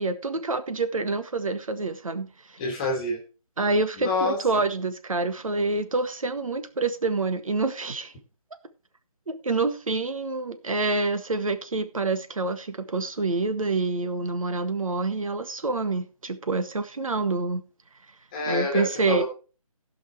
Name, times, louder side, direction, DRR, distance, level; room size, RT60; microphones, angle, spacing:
voice 1, 0.0-2.6 3.6-8.1 9.3-17.6 18.5-19.2, right 3 dB, 65° right, 1.7 m, -27 dB
voice 2, 2.6-3.2 4.0-4.4 18.3-19.2, left 2 dB, 15° left, 2.0 m, -27 dB
15.5 x 5.8 x 4.6 m
figure-of-eight pair, 170°, 19 cm